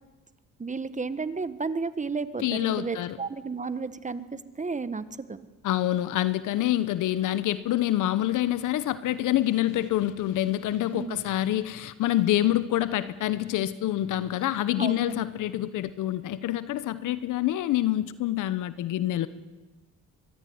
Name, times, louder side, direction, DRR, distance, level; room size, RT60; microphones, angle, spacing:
voice 1, 0.6-5.5 10.9-11.2 14.8-15.2, right 4 dB, 25° right, 13 dB, 1.4 m, -33 dB
voice 2, 2.4-3.2 5.6-19.3, left 13 dB, 85° left, 15 dB, 1.1 m, -26 dB
24.0 x 22.0 x 9.5 m, 1.3 s
cardioid pair, 90°, 30 cm